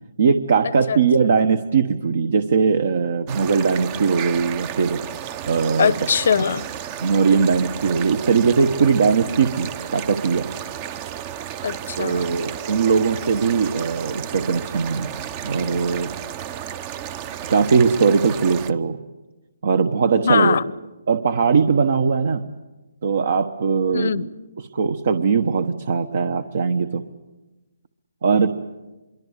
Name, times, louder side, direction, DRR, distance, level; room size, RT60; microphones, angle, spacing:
voice 1, 0.2-5.0 5.4-5.9 7.0-10.5 12.0-15.1 15.4-16.1 17.5-19.0 19.6-20.6 21.1-22.4 23.0-24.1 24.7-27.0 28.2-28.5, right 5 dB, 60° right, 1.2 m, -20 dB
sound 1, 3.3-18.7, right 10 dB, 25° right, 0.7 m, -33 dB
voice 2, 5.8-6.7 11.6-12.2 20.2-20.7 23.9-24.3, left 6 dB, 55° left, 0.8 m, -21 dB
25.0 x 23.0 x 8.2 m
hypercardioid pair, 155°, 0 cm